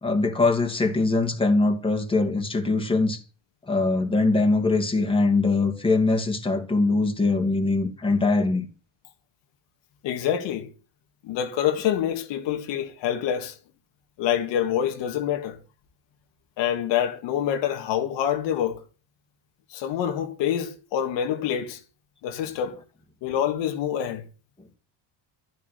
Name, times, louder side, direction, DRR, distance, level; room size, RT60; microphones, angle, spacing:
voice 1, 0.0-3.2 3.7-8.7, left 3 dB, 10° left, 2.7 m, -22 dB
voice 2, 10.0-10.7 11.2-13.6 14.2-15.6 16.6-18.8 19.7-21.8 22.2-22.8 23.2-24.2, left 9 dB, 75° left, 2.2 m, -26 dB
13.0 x 11.0 x 6.8 m
cardioid pair, 125°, 44 cm